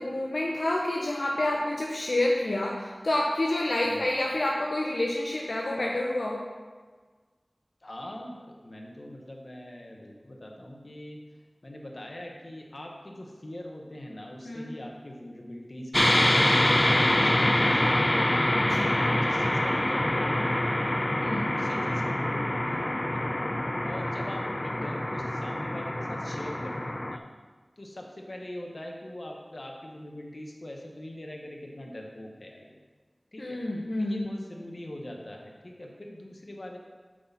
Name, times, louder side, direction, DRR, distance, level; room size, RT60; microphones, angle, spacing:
voice 1, 0.0-6.4 14.4-14.7 17.3-17.6 18.6-18.9 21.2-21.5 33.4-34.3, left 1 dB, 80° left, -2 dB, 0.7 m, -28 dB
voice 2, 7.8-11.2 11.6-18.3 18.7-21.0 21.3-23.4 23.8-27.3 27.8-32.8 33.3-33.6 34.0-36.8, left 1 dB, 60° left, 0 dB, 1.2 m, -42 dB
sound 1, 15.9-27.2, left 1 dB, 30° left, 0.4 m, -25 dB
7.7 x 4.1 x 5.7 m, 1.4 s
wide cardioid pair, 45°, 0 cm